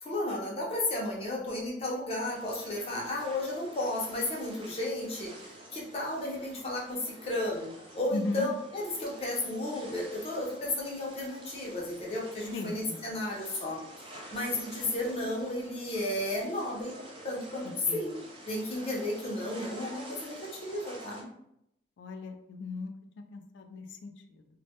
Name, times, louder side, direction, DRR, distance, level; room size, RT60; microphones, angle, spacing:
voice 1, 0.0-5.3 5.7-17.0 17.2-18.2 18.5-21.3, left 1 dB, 35° left, -2 dB, 0.5 m, -33 dB
sound 1, 2.2-21.2, right 1 dB, 30° right, 0.4 m, -49 dB
voice 2, 8.1-8.5 12.5-13.0 17.9-18.0 22.0-22.9 23.2-24.5, left 3 dB, 90° left, 6 dB, 0.3 m, -37 dB
2.2 x 2.0 x 2.7 m, 0.77 s
head